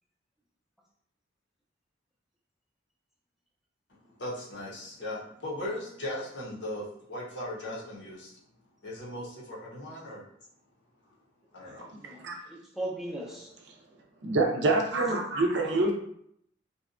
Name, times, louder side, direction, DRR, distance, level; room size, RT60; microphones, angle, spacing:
voice 1, 3.9-8.3 8.8-10.2 11.5-11.9, left 1 dB, 65° left, -5 dB, 0.8 m, -38 dB
voice 2, 12.0-13.6 15.5-15.9, right 1 dB, ahead, -4 dB, 0.5 m, -38 dB
voice 3, 14.2-15.9, right 2 dB, 65° right, 1 dB, 0.5 m, -25 dB
2.7 x 2.2 x 2.4 m, 0.70 s
head